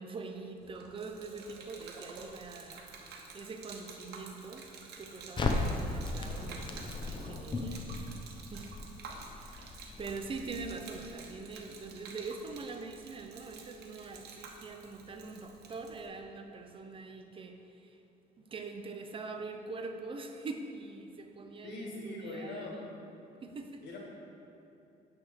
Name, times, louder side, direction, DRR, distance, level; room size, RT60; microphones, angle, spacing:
voice 1, 0.0-7.9 8.5-8.9 9.3-18.0 18.4-22.8 23.4-23.9, right 4 dB, 30° right, 5 dB, 0.6 m, -44 dB
Gurgling / Liquid, 0.6-16.1, right 4 dB, 75° right, 1.0 m, -50 dB
Crackle, 5.4-11.5, left 2 dB, 30° left, 0.7 m, -37 dB
voice 2, 21.6-22.8 23.8-24.0, left 2 dB, 80° left, -2 dB, 1.8 m, -41 dB
9.0 x 3.6 x 6.2 m, 2.7 s
cardioid pair, 110°, 17 cm